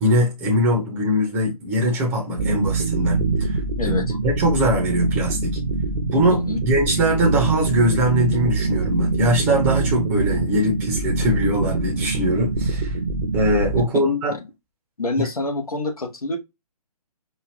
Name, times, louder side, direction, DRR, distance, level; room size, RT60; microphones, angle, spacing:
voice 1, 0.0-5.6 6.1-13.0 13.3-14.3 15.2-15.3, equal, 10° right, 0.7 m, -21 dB
sound 1, 2.4-13.8, right 3 dB, 60° right, 0.8 m, -24 dB
voice 2, 6.3-6.6 15.0-16.4, left 2 dB, 65° left, 1.2 m, -26 dB
4.5 x 2.4 x 3.3 m
figure-of-eight pair, 140°, 20 cm